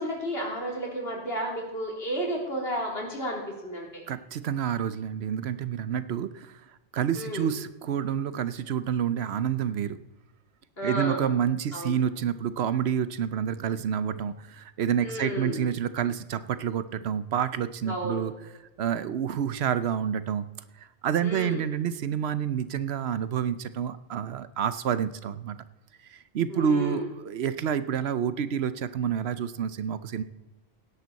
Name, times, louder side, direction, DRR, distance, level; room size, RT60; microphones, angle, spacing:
voice 1, 0.0-4.0 7.1-7.5 10.8-11.3 11.7-12.0 15.0-15.7 17.9-18.3 21.2-21.6 26.5-27.1, right 1 dB, 70° left, -1 dB, 3.5 m, -32 dB
voice 2, 4.1-6.6 6.9-10.0 10.8-18.3 18.8-20.5 20.8-25.6 26.1-30.2, right 8 dB, 80° right, 13 dB, 1.0 m, -28 dB
17.0 x 11.0 x 4.1 m, 1.1 s
omnidirectional pair, 1.1 m